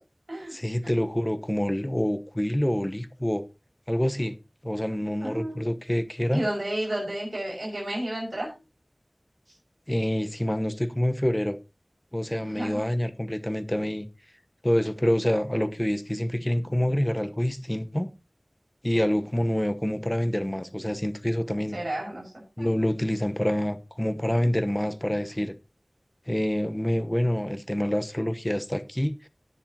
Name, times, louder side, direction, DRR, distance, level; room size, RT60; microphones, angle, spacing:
voice 1, 0.5-3.4 3.9-4.4 4.6-6.5 9.9-11.6 12.1-14.1 14.6-18.1 18.8-21.8 22.6-25.5 26.3-29.3, equal, 20° left, 0.9 m, -27 dB
voice 2, 5.2-5.6 6.3-8.6 12.4-12.9 21.7-22.3 22.6-22.7, right 1 dB, 70° right, 6.1 m, -31 dB
17.5 x 6.9 x 2.8 m
wide cardioid pair, 40°, 0 cm